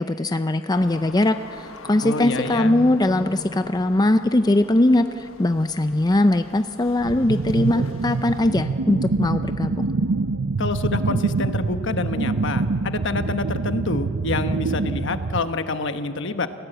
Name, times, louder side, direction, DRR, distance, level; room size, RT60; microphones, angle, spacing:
voice 1, 0.0-9.9, left 1 dB, 20° left, 9 dB, 0.5 m, -21 dB
sound 1, 0.7-8.5, left 3 dB, 80° left, 1.3 m, -45 dB
sound 2, 1.8-5.2, left 1 dB, 50° right, 3.5 m, -38 dB
voice 2, 2.0-2.8 10.6-16.5, left 3 dB, 65° left, 9 dB, 1.1 m, -27 dB
sound 3, 7.0-15.5, right 3 dB, 90° right, 0.7 m, -25 dB
29.0 x 16.5 x 8.0 m, 2.6 s
head